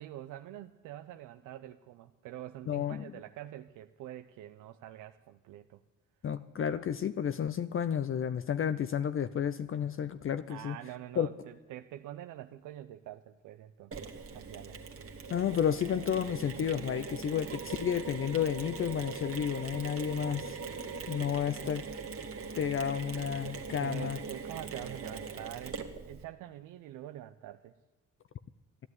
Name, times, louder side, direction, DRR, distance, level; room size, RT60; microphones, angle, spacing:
voice 1, 0.0-5.8 10.5-14.8 22.8-23.0 23.8-27.7, right 13 dB, 90° right, 8 dB, 0.6 m, -46 dB
voice 2, 2.7-3.1 6.2-10.8 11.2-11.3 15.3-20.6 21.1-21.9 22.6-24.2, left 8 dB, 45° left, 11 dB, 0.6 m, -31 dB
Mechanisms, 13.9-26.2, right 5 dB, 50° right, 1.7 m, -41 dB
14.0 x 11.0 x 9.6 m, 1.1 s
cardioid pair, 90°, 30 cm